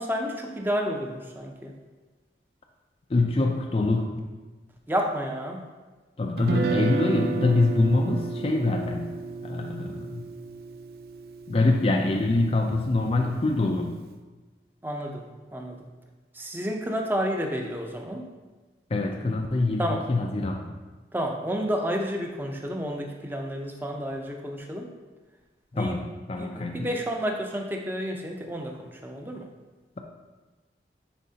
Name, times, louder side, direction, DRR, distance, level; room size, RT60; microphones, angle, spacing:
voice 1, 0.0-1.7 4.9-5.6 14.8-15.2 15.5-15.8 16.3-18.3 19.8-20.0 21.1-24.9 25.7-26.0 26.4-29.5, equal, 10° right, 2 dB, 0.6 m, -30 dB
voice 2, 3.1-4.1 6.2-9.1 9.4-10.2 11.5-13.9 18.9-20.6 25.7-26.9, left 2 dB, 35° left, 2 dB, 0.4 m, -24 dB
Guitar, 6.4-12.5, right 4 dB, 55° right, 0.4 m, -32 dB
9.8 x 4.1 x 2.8 m, 1.3 s
head